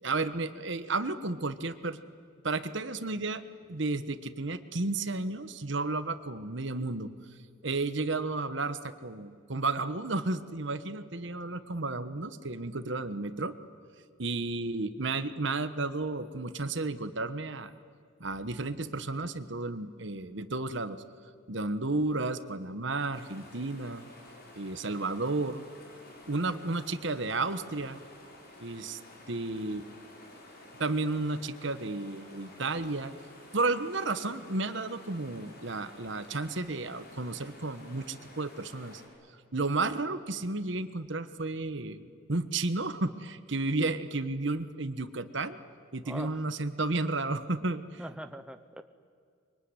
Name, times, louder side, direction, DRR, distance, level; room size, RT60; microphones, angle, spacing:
voice 1, 0.0-2.0 2.4-3.4 3.7-7.1 7.6-13.5 14.2-17.7 18.2-21.0 21.5-24.0 24.5-25.6 26.3-28.0 28.6-29.0 29.3-29.9 30.8-33.1 33.5-39.0 39.5-45.6 45.9-48.0, right 3 dB, 60° right, 12 dB, 1.3 m, -32 dB
sound 1, 23.1-39.1, left 1 dB, 50° left, 6.3 m, -52 dB
voice 2, 46.0-46.4 48.0-48.8, right 1 dB, 5° right, 8 dB, 0.8 m, -42 dB
25.0 x 23.5 x 9.8 m, 2.1 s
head